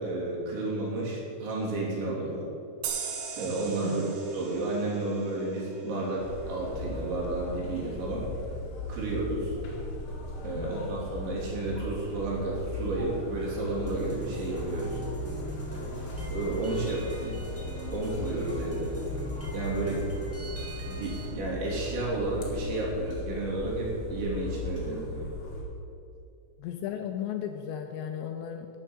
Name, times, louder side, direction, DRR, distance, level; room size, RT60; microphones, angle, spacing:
voice 1, 0.0-2.5 3.4-8.3 8.9-9.6 10.4-15.0 16.3-17.4 17.9-19.0 19.5-20.0 20.9-25.2, right 2 dB, 65° right, -4 dB, 5.4 m, -31 dB
sound 1, 2.8-6.2, right 6 dB, 80° right, 4.0 m, -39 dB
voice 2, 3.8-4.2 10.6-10.9 26.6-28.7, left 9 dB, 85° left, 5 dB, 2.5 m, -35 dB
sound 2, 6.2-25.6, left 2 dB, 40° left, 2.2 m, -37 dB
sound 3, 13.9-21.2, right 1 dB, 10° right, 0.6 m, -41 dB
12.0 x 8.0 x 8.9 m, 2.7 s
omnidirectional pair, 5.8 m